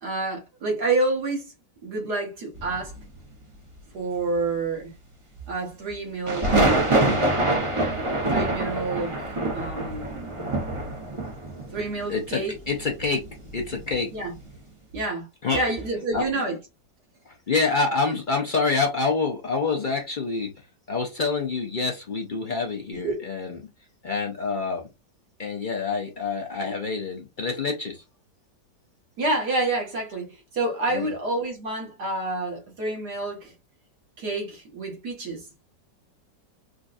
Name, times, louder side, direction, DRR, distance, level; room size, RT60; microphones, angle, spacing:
voice 1, 0.0-1.5 1.8-3.0 3.9-4.9 5.5-6.6 8.3-9.1 9.5-10.5 11.7-12.6 14.1-14.3 14.9-15.3 15.5-16.6 23.0-23.2 29.2-33.5 34.2-35.5, right 2 dB, 65° right, 2.2 m, -28 dB
sound 1, 2.5-3.2 6.3-14.0 14.3-14.6, right 2 dB, 25° right, 0.7 m, -25 dB
voice 2, 12.1-13.3 13.5-14.1 15.4-15.6 16.1-16.2 17.5-20.5 20.9-23.6 24.0-24.8 25.4-28.0 30.9-31.1, left 4 dB, 75° left, 0.4 m, -26 dB
5.0 x 2.4 x 2.6 m
omnidirectional pair, 1.9 m